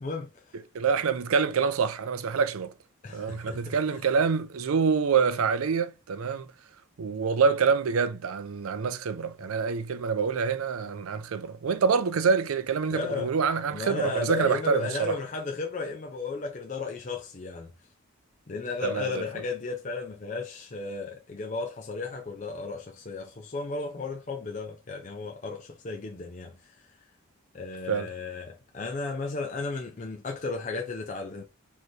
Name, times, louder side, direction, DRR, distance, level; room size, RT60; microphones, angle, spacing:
voice 1, 0.0-0.6 3.0-3.8 12.9-13.3 13.7-17.7 18.5-26.8 27.5-31.4, left 3 dB, 35° left, 0.5 m, -34 dB
voice 2, 0.7-2.7 3.1-6.5 7.0-15.1 18.8-19.2 27.9-28.1, right 5 dB, 80° right, 0.5 m, -26 dB
4.5 x 3.0 x 3.2 m
head